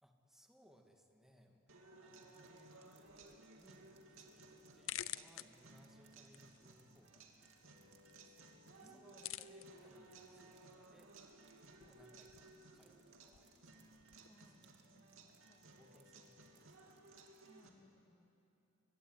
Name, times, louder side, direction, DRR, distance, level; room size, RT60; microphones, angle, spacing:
voice 1, 0.0-7.3 7.6-8.5 8.8-14.7 15.7-17.2, equal, ahead, 2 dB, 2.2 m, -68 dB
sound 1, 1.7-17.7, right 2 dB, 75° right, 2.7 m, -60 dB
sound 2, 2.1-17.7, right 8 dB, 55° right, 2.3 m, -75 dB
sound 3, 3.0-14.3, left 13 dB, 75° left, 0.6 m, -54 dB
voice 2, 8.8-9.2 14.3-15.9 17.5-18.3, equal, 30° left, 3 dB, 2.4 m, -68 dB
24.0 x 23.0 x 9.8 m, 3.0 s
head